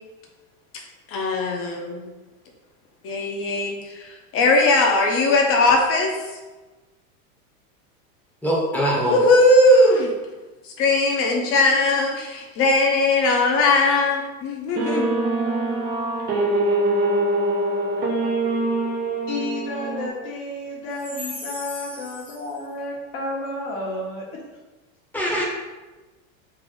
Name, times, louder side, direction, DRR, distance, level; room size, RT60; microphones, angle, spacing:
voice 1, 1.1-2.1 3.0-6.2 9.1-10.1 10.8-15.1, left 2 dB, 35° left, 1 dB, 0.7 m, -19 dB
voice 2, 8.4-9.2 25.1-25.4, equal, 5° left, -4 dB, 0.8 m, -22 dB
sound 1, 14.8-20.1, right 2 dB, 25° right, 0.4 m, -23 dB
voice 3, 19.3-24.3, left 2 dB, 65° left, -3 dB, 1.2 m, -31 dB
3.4 x 2.4 x 3.7 m, 1.2 s
supercardioid pair, 125°, 41 cm